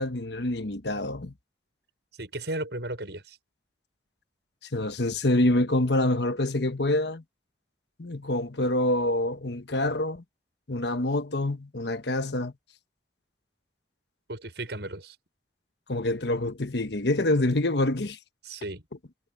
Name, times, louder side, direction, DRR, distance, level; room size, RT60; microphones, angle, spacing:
voice 1, 0.0-1.3 4.7-7.2 8.0-10.2 10.7-12.5 15.9-18.2, left 1 dB, 70° left, 1.3 m, -26 dB
voice 2, 2.1-3.4 14.3-15.2 18.4-18.8, right 2 dB, 70° right, 6.5 m, -35 dB
head